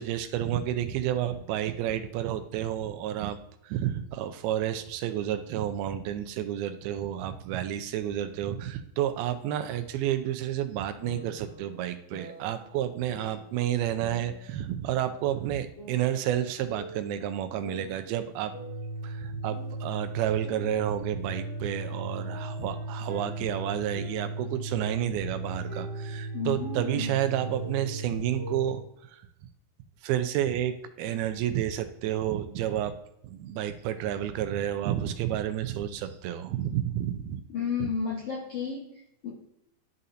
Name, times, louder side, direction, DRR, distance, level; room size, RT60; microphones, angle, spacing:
voice 1, 0.0-3.4 3.6-18.5 19.0-29.3 30.0-33.0 33.2-37.4 37.8-37.9, right 11 dB, 85° right, 9 dB, 2.4 m, -30 dB
sound 1, 11.0-12.7 13.1-14.7 14.9-17.2 17.6-20.0 20.4-24.5 24.8-28.8, equal, 25° left, 2.1 m, -47 dB
Organ, 18.4-28.8, right 2 dB, 65° right, 2.8 m, -36 dB
voice 2, 26.3-27.1 37.5-38.9 39.2-39.3, left 6 dB, 75° left, -4 dB, 1.4 m, -32 dB
11.5 x 4.2 x 2.6 m, 0.79 s
omnidirectional pair, 4.4 m